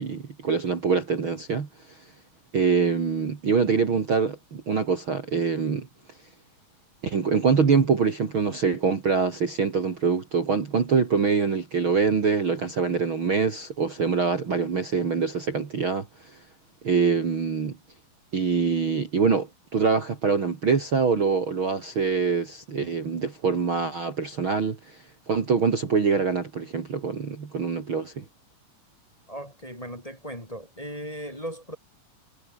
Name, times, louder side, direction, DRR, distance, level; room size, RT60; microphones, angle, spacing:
voice 1, 0.0-2.0 2.5-5.9 7.0-16.3 16.8-17.8 18.3-28.2, right 5 dB, 40° right, 2.8 m, -24 dB
voice 2, 29.3-31.8, equal, 10° left, 3.8 m, -37 dB
omnidirectional pair, 4.1 m